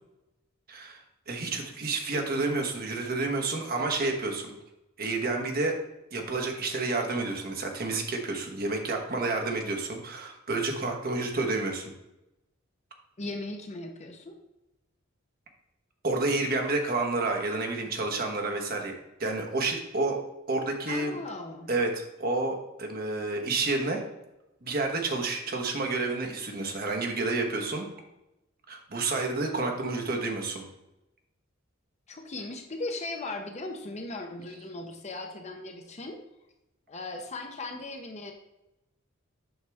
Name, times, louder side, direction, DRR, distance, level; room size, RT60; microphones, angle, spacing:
voice 1, 0.7-1.0 1.3-4.6 5.0-5.8 6.1-11.9 16.0-18.9 19.2-20.2 20.5-21.2 21.7-24.0 24.6-27.9 28.7-30.7, right 3 dB, 45° right, 2 dB, 1.2 m, -29 dB
voice 2, 13.2-14.4 20.9-21.7 32.1-36.2 36.9-38.3, left 2 dB, 35° left, 4 dB, 0.8 m, -38 dB
7.9 x 5.6 x 3.5 m, 0.94 s
head